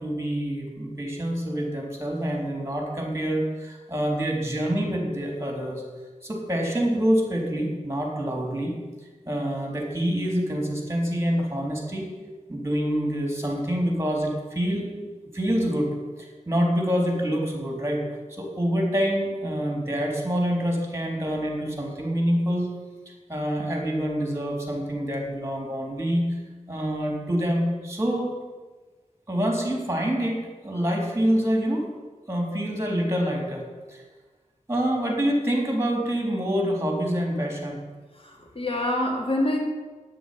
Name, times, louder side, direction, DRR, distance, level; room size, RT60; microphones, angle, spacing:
voice 1, 0.0-5.8 6.2-8.8 9.3-12.1 12.5-14.9 15.3-18.0 18.3-22.7 23.3-26.4 26.7-28.3 29.3-31.9 32.3-34.0 34.7-37.8, equal, 20° right, 1 dB, 4.0 m, -26 dB
voice 2, 38.1-39.6, left 1 dB, 50° left, 0 dB, 2.7 m, -26 dB
10.0 x 9.8 x 9.5 m, 1.3 s
wide cardioid pair, 65°, 13 cm